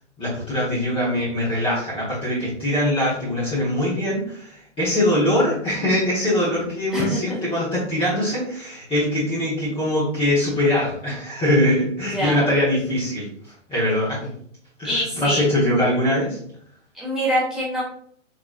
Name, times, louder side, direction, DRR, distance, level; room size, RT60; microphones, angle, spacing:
voice 1, 0.2-14.3 14.8-16.4, left 1 dB, 15° left, -10 dB, 1.3 m, -22 dB
voice 2, 6.9-7.4 12.1-12.5 14.8-15.5 16.9-17.8, equal, ahead, -9 dB, 1.5 m, -24 dB
4.0 x 2.9 x 2.4 m, 0.64 s
hypercardioid pair, 120°, 37 cm